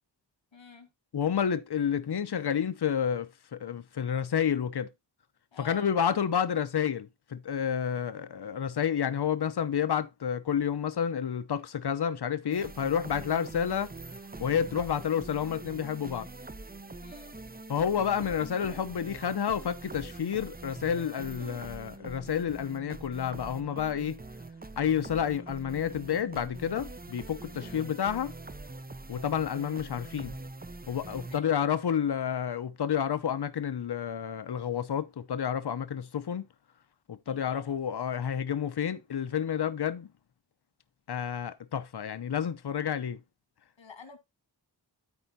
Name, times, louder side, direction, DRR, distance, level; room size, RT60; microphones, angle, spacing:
voice 1, 0.5-0.9 5.5-5.9 17.0-17.4 27.5-28.0 31.1-31.7 37.3-37.7 43.8-44.2, left 5 dB, 85° left, 2.0 m, -50 dB
voice 2, 1.1-4.9 5.6-13.9 14.4-16.3 17.7-24.2 24.8-28.3 29.1-30.3 30.9-36.5 37.1-40.1 41.1-43.2, left 8 dB, 60° left, 0.8 m, -30 dB
sound 1, 12.5-31.4, right 3 dB, 20° right, 0.8 m, -44 dB
13.0 x 4.5 x 2.7 m
wide cardioid pair, 55°, 44 cm